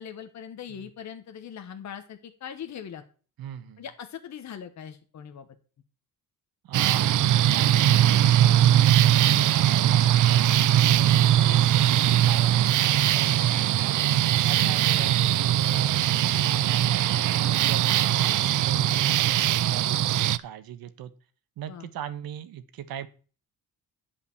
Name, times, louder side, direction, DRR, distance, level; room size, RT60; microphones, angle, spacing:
voice 1, 0.0-3.0 3.8-5.5 14.6-15.0 21.7-21.9, left 8 dB, 50° left, 7 dB, 1.2 m, -41 dB
voice 2, 3.4-3.8 6.6-8.9 9.5-14.0 14.4-17.3 17.6-21.1 21.6-23.1, right 10 dB, 80° right, 10 dB, 1.3 m, -40 dB
sound 1, 6.7-20.4, right 12 dB, 60° right, 0.6 m, -21 dB
11.0 x 5.1 x 7.1 m, 0.39 s
cardioid pair, 140°, 35 cm